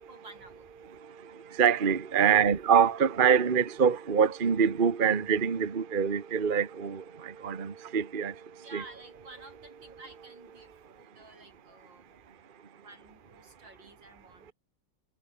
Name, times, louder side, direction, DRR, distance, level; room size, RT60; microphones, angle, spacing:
voice 1, 0.1-0.7 2.2-2.5 8.6-12.2 12.7-14.5, right 2 dB, 85° right, 8.3 m, -51 dB
voice 2, 1.0-8.4 8.7-8.8, right 7 dB, 30° right, 1.3 m, -25 dB
omnidirectional pair, 2.0 m